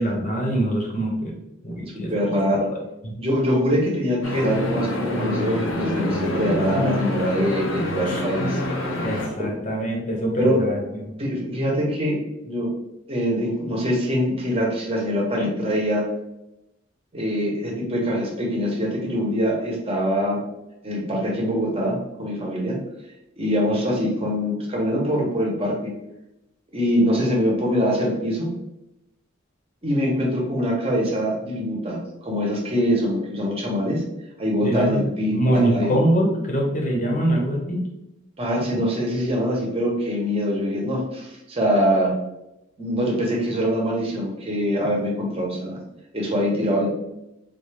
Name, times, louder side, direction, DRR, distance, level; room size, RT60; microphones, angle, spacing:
voice 1, 0.0-1.3 1.6-2.1 3.0-3.1 8.0-8.2 9.0-11.1 34.6-35.0 35.3-37.8 38.7-38.8, right 1 dB, 40° left, 0 dB, 0.9 m, -23 dB
voice 2, 1.9-2.7 3.2-8.6 9.4-9.5 10.4-10.7 11.2-12.2 12.4-12.7 13.1-16.0 17.1-20.4 20.8-22.8 23.4-25.9 26.7-28.5 29.8-34.0 34.4-35.9 38.4-42.1 42.8-45.8 46.1-46.9, equal, 30° right, -2 dB, 0.9 m, -23 dB
sound 1, 4.2-9.3, left 1 dB, 65° left, 0.6 m, -26 dB
3.8 x 2.5 x 3.2 m, 0.88 s
head